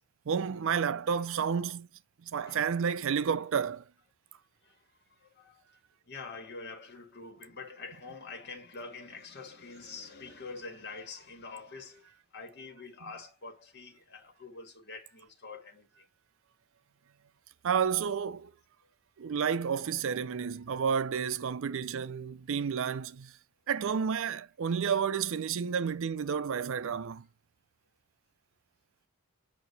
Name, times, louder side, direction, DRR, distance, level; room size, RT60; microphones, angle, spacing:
voice 1, 0.3-1.9 2.2-3.8 17.6-18.5 19.2-23.3 23.7-27.3, right 7 dB, 60° right, 0.4 m, -31 dB
voice 2, 2.3-3.5 4.6-16.1, left 4 dB, 50° left, 1.6 m, -46 dB
8.4 x 2.8 x 4.1 m
head